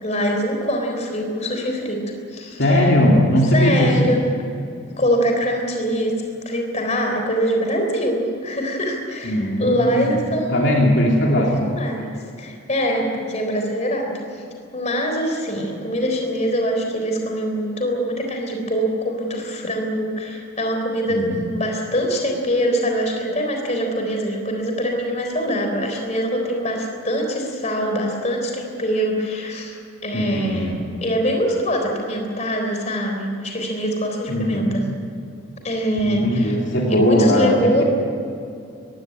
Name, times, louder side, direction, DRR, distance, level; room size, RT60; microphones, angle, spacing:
voice 1, 0.0-2.0 2.3-2.9 3.5-4.2 5.0-6.1 6.5-10.8 11.5-14.4 14.7-29.8 30.0-30.7 31.0-34.8 35.6-36.6 36.9-37.8, equal, 30° left, 2 dB, 3.8 m, -23 dB
voice 2, 2.6-4.1 9.2-10.2 10.5-11.7 21.1-21.4 30.1-30.7 34.3-34.8 36.0-37.8, left 1 dB, 60° left, -2 dB, 3.1 m, -19 dB
20.5 x 16.0 x 9.7 m, 2.5 s
head